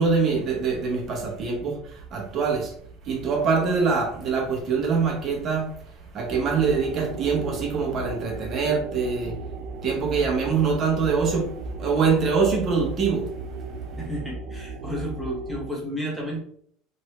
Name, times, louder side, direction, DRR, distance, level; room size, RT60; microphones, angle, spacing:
voice 1, 0.0-2.7 3.0-5.8 6.1-9.4 9.8-11.5 11.8-13.3, right 5 dB, 35° right, 0.9 m, -24 dB
sound 1, 6.3-15.7, right 4 dB, 60° right, 0.4 m, -35 dB
voice 2, 14.0-16.4, equal, ahead, 0.9 m, -32 dB
3.1 x 2.6 x 3.1 m
cardioid pair, 155°, 0 cm